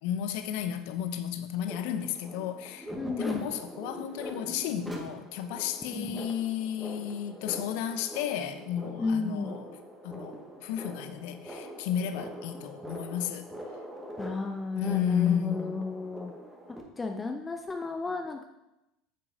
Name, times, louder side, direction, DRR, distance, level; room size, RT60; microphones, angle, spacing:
voice 1, 0.0-2.9 3.2-9.7 10.0-13.5 14.7-15.9, left 9 dB, 70° left, 10 dB, 0.6 m, -33 dB
sound 1, 1.7-16.8, equal, 5° right, 1.8 m, -43 dB
voice 2, 3.0-3.5 6.0-6.2 9.0-9.6 14.2-16.3 17.0-18.4, left 3 dB, 20° left, 4 dB, 0.7 m, -33 dB
9.6 x 6.9 x 2.8 m, 0.92 s
hypercardioid pair, 80°, 0 cm